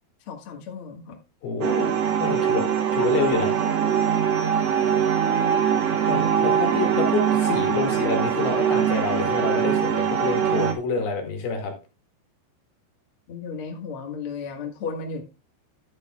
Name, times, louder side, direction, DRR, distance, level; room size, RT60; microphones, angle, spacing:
voice 1, 0.3-1.2 2.2-2.6 3.0-3.1 3.5-3.6 13.3-15.2, left 5 dB, 50° left, 2 dB, 1.8 m, -35 dB
voice 2, 1.4-1.9 2.2-2.7 2.9-3.5 6.1-11.7, left 4 dB, 70° left, 3 dB, 3.8 m, -27 dB
sound 1, 1.6-10.7, right 8 dB, 70° right, 1.5 m, -22 dB
11.5 x 8.4 x 2.4 m, 0.30 s
omnidirectional pair, 4.7 m